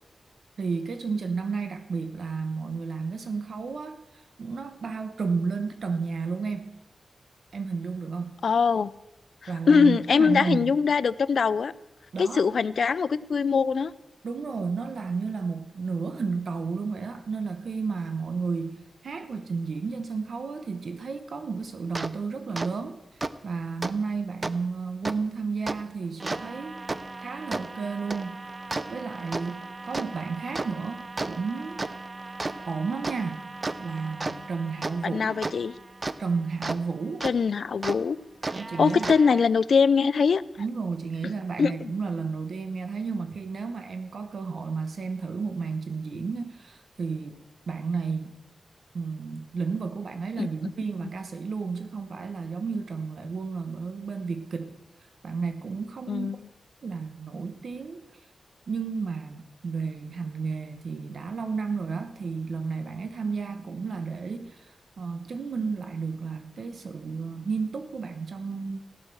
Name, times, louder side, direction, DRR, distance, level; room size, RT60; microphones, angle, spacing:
voice 1, 0.6-6.8 7.5-8.3 9.5-10.8 12.1-12.4 14.2-23.0 23.4-26.8 27.2-28.4 28.9-31.8 32.6-33.5 33.8-35.4 36.2-37.3 38.5-39.1 40.6-47.4 47.7-48.4 48.9-54.8 55.2-56.3 56.8-58.0 58.7-68.8, right 5 dB, 65° right, 8 dB, 0.9 m, -32 dB
voice 2, 8.4-8.9 9.7-11.7 12.2-13.9 35.0-35.7 37.2-38.2 38.8-40.4 41.6-41.9 50.4-50.5 56.1-56.4, left 5 dB, 65° left, 18 dB, 0.4 m, -22 dB
sound 1, 21.9-22.1 22.6-22.7 23.2-23.3 23.8-23.9 24.4-24.5 25.0-25.2 25.7-25.8 26.2-36.8 37.2-37.3 37.8-38.0 38.4-39.5, right 2 dB, 30° right, 0.5 m, -34 dB
15.5 x 6.4 x 7.6 m, 0.96 s
wide cardioid pair, 125°, 0 cm